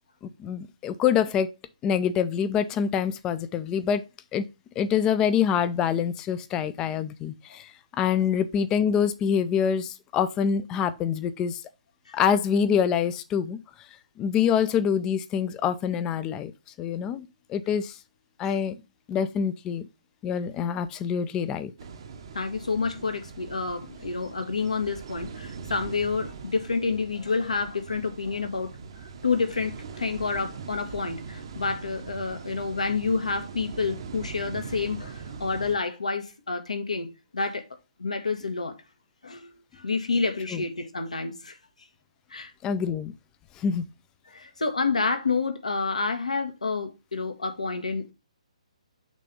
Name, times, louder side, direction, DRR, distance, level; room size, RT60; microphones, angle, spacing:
voice 1, 0.4-1.5 1.8-4.0 4.3-4.4 4.8-7.7 8.0-11.6 12.1-13.6 14.2-16.5 16.8-18.0 18.4-18.8 19.1-19.9 20.2-21.7 40.5-40.6 42.6-43.1 43.6-43.9, left 7 dB, 15° left, 0.5 m, -25 dB
sound 1, 21.8-35.8, right 5 dB, 45° right, 0.9 m, -41 dB
voice 2, 22.3-28.7 29.0-37.7 38.0-38.8 39.2-41.6 42.3-42.5 44.3-48.1, left 4 dB, 70° left, 1.4 m, -29 dB
6.1 x 3.4 x 5.4 m
figure-of-eight pair, 130°, 4 cm